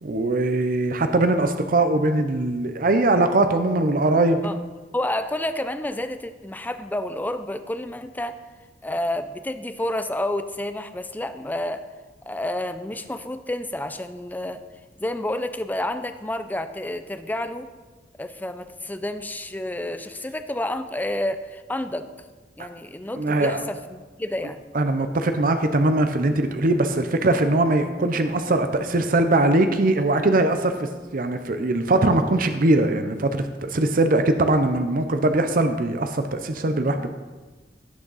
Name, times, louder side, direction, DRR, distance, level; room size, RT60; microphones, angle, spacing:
voice 1, 0.0-4.4 22.6-22.7 23.1-23.6 24.7-37.1, right 2 dB, 55° right, 8 dB, 0.7 m, -21 dB
voice 2, 4.9-8.3 8.8-11.8 12.3-14.6 15.0-17.7 18.2-22.1 22.6-24.6, left 1 dB, 10° left, 9 dB, 0.5 m, -29 dB
16.5 x 6.3 x 4.1 m, 1.3 s
head